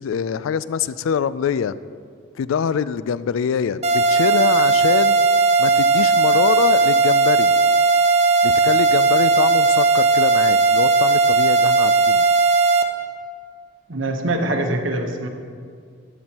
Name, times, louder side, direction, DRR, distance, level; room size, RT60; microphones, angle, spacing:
voice 1, 0.0-1.7 2.4-5.2 5.6-7.5 8.4-12.2, left 7 dB, 75° left, 16 dB, 0.3 m, -24 dB
sound 1, 3.8-12.8, right 4 dB, 30° right, 0.5 m, -16 dB
voice 2, 13.9-15.3, right 1 dB, 70° right, 4 dB, 1.0 m, -23 dB
12.0 x 9.3 x 2.9 m, 2.1 s
head